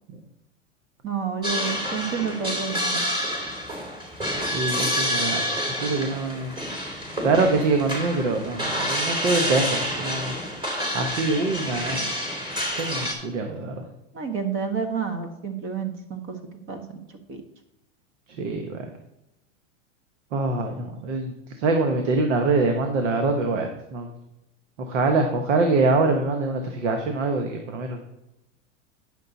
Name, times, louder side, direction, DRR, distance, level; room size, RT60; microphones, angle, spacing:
voice 1, 1.0-3.0 14.1-16.4 16.7-16.8 17.3-17.4, right 6 dB, 35° right, 6 dB, 1.6 m, -29 dB
sound 1, 1.4-13.1, equal, 15° right, 2.8 m, -28 dB
voice 2, 4.5-5.4 5.8-6.5 7.2-10.3 10.9-12.1 12.7-13.9 18.3-18.9 20.3-24.1 24.9-28.0, right 3 dB, 70° right, 5 dB, 1.4 m, -24 dB
9.9 x 6.6 x 4.1 m, 0.91 s
hypercardioid pair, 120°, 37 cm